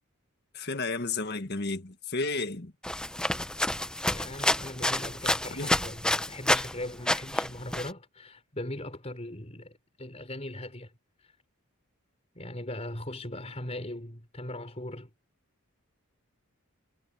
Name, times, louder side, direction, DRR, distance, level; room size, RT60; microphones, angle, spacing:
voice 1, 0.5-2.7 5.5-5.7, left 3 dB, 50° left, 1.6 m, -32 dB
sound 1, 2.8-6.7 7.0-7.9, left 1 dB, 5° left, 0.6 m, -29 dB
voice 2, 4.1-10.9 11.2-11.3 12.3-15.1, left 1 dB, 30° left, 4.7 m, -39 dB
head